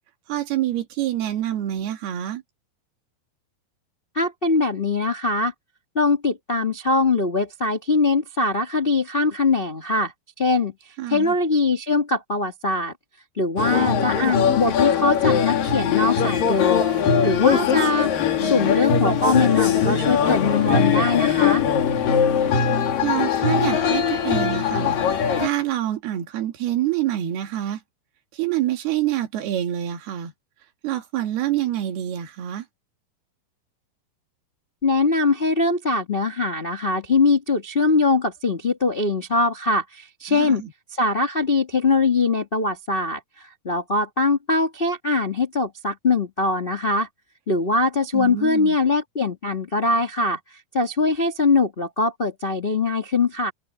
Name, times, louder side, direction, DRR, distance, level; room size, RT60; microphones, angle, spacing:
voice 1, 0.3-2.4 11.0-11.4 18.4-18.8 23.0-25.0 25.4-27.8 28.3-30.3 30.8-32.7 40.3-40.7 48.1-48.8, right 13 dB, 85° right, 4.1 m, -26 dB
voice 2, 4.1-5.5 5.9-12.9 13.4-18.1 18.4-21.6 34.8-40.6 41.0-47.1 47.5-50.4 50.7-53.5, left 3 dB, 85° left, 0.5 m, -22 dB
sound 1, 13.6-25.5, left 7 dB, 65° left, 4.0 m, -21 dB
open air
omnidirectional pair, 4.4 m